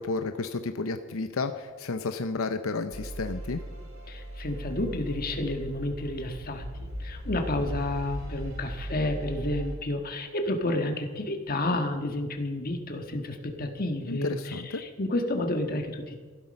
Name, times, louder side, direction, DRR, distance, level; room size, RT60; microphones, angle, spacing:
voice 1, 0.0-3.6 14.1-14.8, left 3 dB, 85° left, 8 dB, 0.7 m, -32 dB
sound 1, 2.9-9.8, right 1 dB, 90° right, 2.9 m, -38 dB
voice 2, 4.1-16.2, left 1 dB, 45° left, 4 dB, 1.5 m, -30 dB
15.5 x 12.0 x 5.3 m, 1.5 s
head